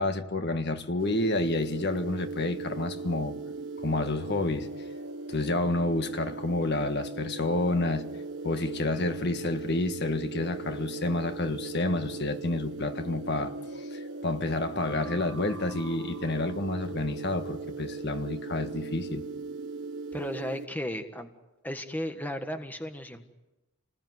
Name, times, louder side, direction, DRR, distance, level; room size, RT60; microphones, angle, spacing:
voice 1, 0.0-3.3 3.8-4.7 5.3-8.1 8.4-19.2, left 2 dB, 50° left, 1.7 m, -29 dB
sound 1, 1.0-20.7, right 3 dB, 55° right, 1.5 m, -38 dB
voice 2, 20.1-21.3 21.6-23.3, equal, 10° left, 1.5 m, -35 dB
28.5 x 20.0 x 9.6 m
head